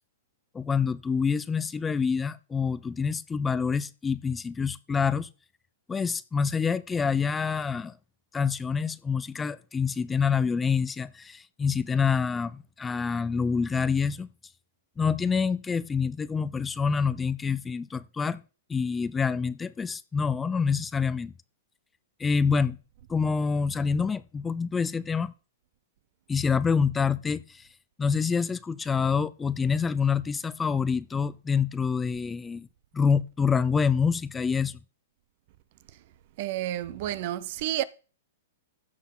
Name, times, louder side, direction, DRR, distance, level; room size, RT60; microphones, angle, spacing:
voice 1, 0.5-5.3 5.9-7.9 8.3-14.3 15.0-18.4 18.7-21.3 22.2-22.8 23.1-25.3 26.3-27.7 28.0-32.7 32.9-34.8, left 5 dB, 15° left, 0.4 m, -27 dB
voice 2, 36.4-37.8, right 13 dB, 50° right, 0.8 m, -30 dB
15.5 x 6.5 x 3.8 m
hypercardioid pair, 135°, 0 cm